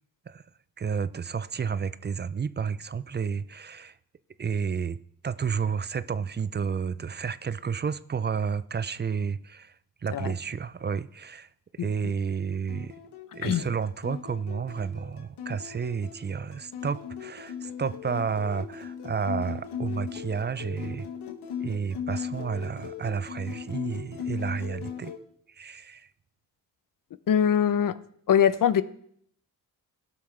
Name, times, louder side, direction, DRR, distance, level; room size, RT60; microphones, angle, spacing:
voice 1, 0.8-4.0 4.4-13.0 13.3-21.1 21.6-25.1 25.5-26.1, right 6 dB, 25° right, 0.4 m, -31 dB
voice 2, 11.8-12.1 13.4-13.7 27.3-28.0 28.3-28.8, left 9 dB, 55° left, 0.6 m, -23 dB
sound 1, 12.7-25.2, left 8 dB, 90° left, 1.0 m, -38 dB
17.0 x 5.9 x 3.3 m
cardioid pair, 60°, 39 cm